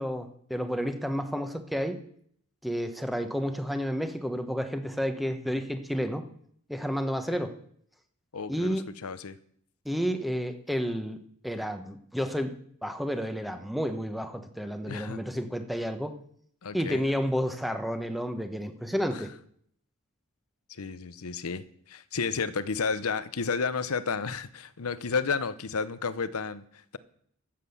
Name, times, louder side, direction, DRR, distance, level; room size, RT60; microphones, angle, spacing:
voice 1, 0.0-2.0 2.6-6.3 6.7-7.5 8.5-8.8 9.8-12.5 12.8-16.2 16.7-19.3, equal, ahead, 1.0 m, -31 dB
voice 2, 8.3-9.4 14.9-15.2 16.6-17.0 19.1-19.3 20.7-27.0, left 5 dB, 85° left, 0.8 m, -32 dB
14.5 x 7.6 x 7.0 m
head